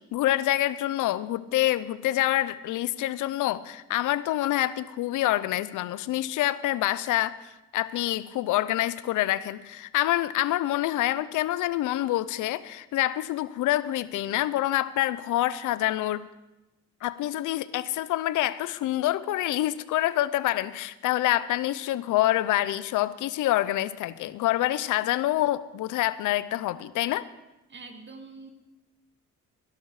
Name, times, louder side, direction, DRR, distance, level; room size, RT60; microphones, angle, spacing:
voice 1, 0.1-16.3 17.0-27.3, left 14 dB, 85° left, 17 dB, 0.7 m, -26 dB
voice 2, 27.7-28.5, right 3 dB, 35° right, 5 dB, 2.4 m, -44 dB
17.5 x 11.5 x 4.8 m, 1.0 s
cardioid pair, 90°, 30 cm